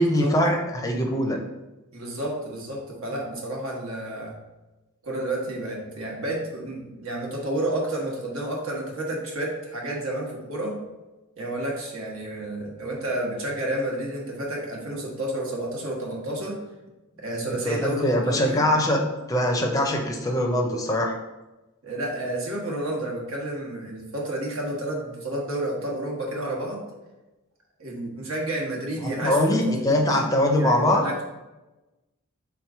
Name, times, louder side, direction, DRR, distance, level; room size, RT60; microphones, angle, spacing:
voice 1, 0.0-1.4 17.6-19.0 19.3-21.2 29.0-31.0, left 1 dB, 15° left, 2 dB, 0.5 m, -22 dB
voice 2, 1.9-4.4 5.0-10.7 11.4-16.6 17.2-18.7 19.9-20.1 21.8-26.8 27.8-30.2 30.5-31.1, right 1 dB, 70° right, -2 dB, 1.1 m, -30 dB
3.6 x 3.0 x 4.7 m, 1.1 s
head